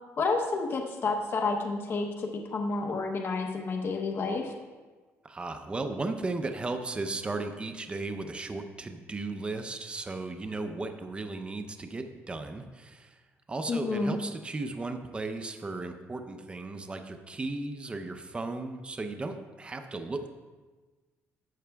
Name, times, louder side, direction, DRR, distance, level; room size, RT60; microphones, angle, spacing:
voice 1, 0.2-4.5 13.7-14.2, left 3 dB, 45° left, 3 dB, 0.8 m, -30 dB
voice 2, 5.2-13.2 13.5-20.3, right 3 dB, 20° right, 6 dB, 0.6 m, -35 dB
12.5 x 7.8 x 2.3 m, 1.3 s
cardioid pair, 110°, 5 cm